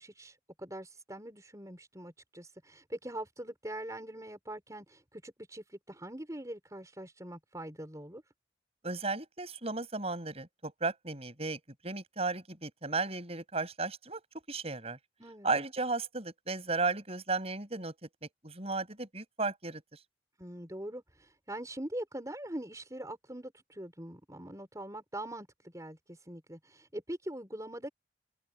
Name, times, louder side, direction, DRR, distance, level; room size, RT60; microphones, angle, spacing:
voice 1, 0.0-8.2 15.2-15.5 20.4-27.9, right 1 dB, 20° right, 5.0 m, -43 dB
voice 2, 8.8-14.2 14.5-15.0 15.4-17.9 18.2-20.0, right 3 dB, 35° right, 6.9 m, -35 dB
head